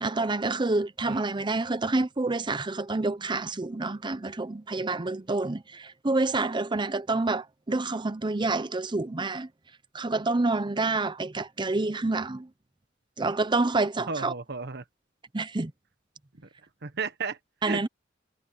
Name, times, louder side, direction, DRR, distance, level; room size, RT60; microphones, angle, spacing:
voice 1, 0.0-9.5 9.9-12.5 13.2-14.3 15.3-15.7 17.6-17.9, right 3 dB, 25° right, 0.7 m, -28 dB
voice 2, 14.1-14.8 16.8-17.9, right 4 dB, 60° right, 1.3 m, -34 dB
head